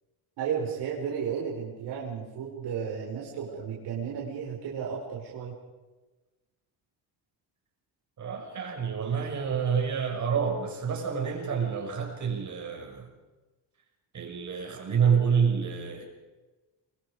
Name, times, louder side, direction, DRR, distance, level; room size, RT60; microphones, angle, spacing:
voice 1, 0.4-5.5, right 7 dB, 80° right, -4 dB, 5.4 m, -33 dB
voice 2, 8.2-13.1 14.1-16.1, right 6 dB, 45° right, 2 dB, 6.0 m, -28 dB
28.0 x 24.0 x 5.1 m, 1.2 s
cardioid pair, 140°, 40 cm